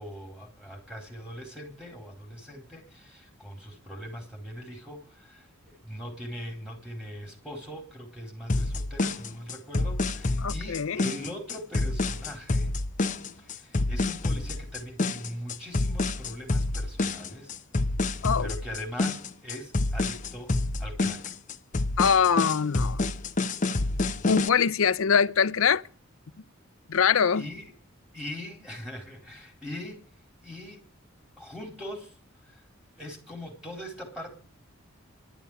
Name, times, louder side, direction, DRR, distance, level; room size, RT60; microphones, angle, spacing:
voice 1, 0.0-12.7 13.4-17.6 18.4-20.5 20.8-21.3 27.3-27.7 28.1-30.0 30.4-30.8 31.4-32.2 32.5-32.6 33.0-34.3, equal, 5° right, 4.1 m, -41 dB
sound 1, 8.5-24.5, left 2 dB, 35° left, 0.7 m, -28 dB
voice 2, 10.4-11.0 18.2-18.5 22.0-23.1 24.2-25.8 26.9-27.5, left 6 dB, 75° left, 0.6 m, -23 dB
11.5 x 7.1 x 9.9 m
head